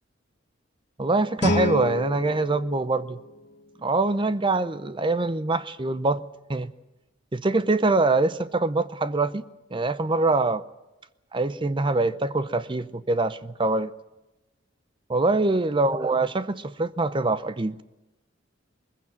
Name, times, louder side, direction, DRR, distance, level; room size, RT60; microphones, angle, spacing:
voice 1, 1.0-3.2 3.8-6.2 6.5-6.7 7.3-9.4 9.7-10.6 11.3-13.9 15.1-17.8, right 2 dB, 25° right, 0.6 m, -24 dB
Guitar, 1.4-4.2, left 1 dB, 60° left, 1.8 m, -30 dB
21.5 x 15.5 x 8.9 m
head